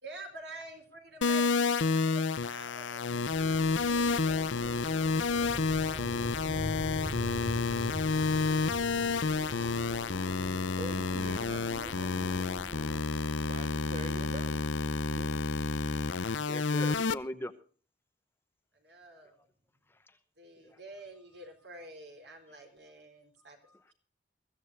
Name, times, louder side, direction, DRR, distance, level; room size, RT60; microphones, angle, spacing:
voice 1, 0.0-6.1 18.8-19.5 20.4-23.6, right 1 dB, 65° right, 5 dB, 4.2 m, -49 dB
sound 1, 1.2-17.1, left 4 dB, 85° left, 0.6 m, -30 dB
voice 2, 1.8-2.9 10.8-12.4 13.4-14.7 15.1-15.4, right 2 dB, 40° right, 6 dB, 1.4 m, -46 dB
sound 2, 3.3-13.0, equal, 5° right, 2.1 m, -41 dB
voice 3, 16.4-17.5 19.3-19.4 19.9-20.2 20.6-20.8 23.4-23.8, left 1 dB, 10° left, 9 dB, 0.9 m, -42 dB
23.0 x 15.0 x 2.6 m, 0.40 s
head